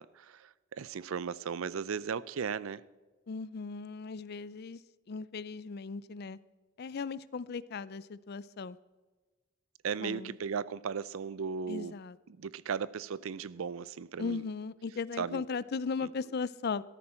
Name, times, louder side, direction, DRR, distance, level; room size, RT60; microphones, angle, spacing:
voice 1, 0.0-2.8 9.8-11.9 12.3-14.4 15.2-15.4 16.0-16.1, right 6 dB, 80° right, 0.5 m, -36 dB
voice 2, 3.3-4.8 5.1-6.4 6.8-8.8 10.0-10.4 11.7-12.2 14.2-16.8, left 5 dB, 50° left, 0.4 m, -37 dB
14.5 x 13.0 x 4.3 m
head